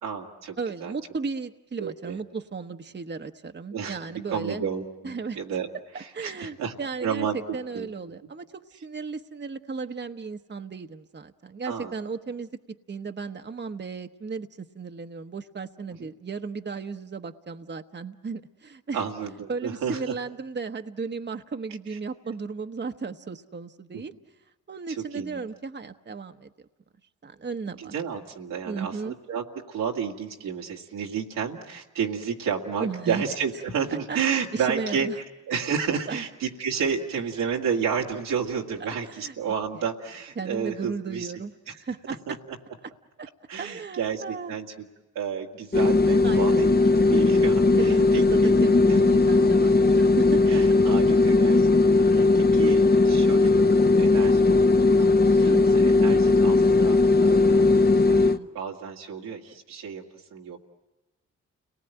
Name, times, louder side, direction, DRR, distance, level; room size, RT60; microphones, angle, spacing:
voice 1, 0.0-0.9 1.8-2.2 3.7-4.0 4.3-5.7 6.0-6.7 7.0-7.4 7.7-7.9 11.6-11.9 16.0-16.1 18.9-20.1 23.9-24.0 24.9-25.4 27.8-35.1 35.5-41.3 41.7-41.8 42.3-42.4 43.5-44.9 45.2-48.5 48.9-49.0 50.5-51.7 51.9-55.5 55.8-60.0 60.3-60.6, right 7 dB, 90° right, 0 dB, 2.1 m, -31 dB
voice 2, 0.6-4.6 5.0-5.4 5.9-12.5 12.9-19.0 19.5-24.1 24.7-26.7 27.2-27.9 28.7-29.2 32.8-33.2 33.9-34.2 34.5-35.2 36.1-36.2 38.8-39.3 40.4-42.4 43.2-43.3 43.6-44.5 46.2-46.7 47.8-50.6 55.4-55.6 57.2-57.8 58.1-58.5, right 4 dB, 35° right, 7 dB, 1.1 m, -35 dB
sound 1, 45.7-58.4, left 3 dB, 30° left, 1.0 m, -18 dB
30.0 x 19.0 x 9.0 m, 1.1 s
supercardioid pair, 45°, 32 cm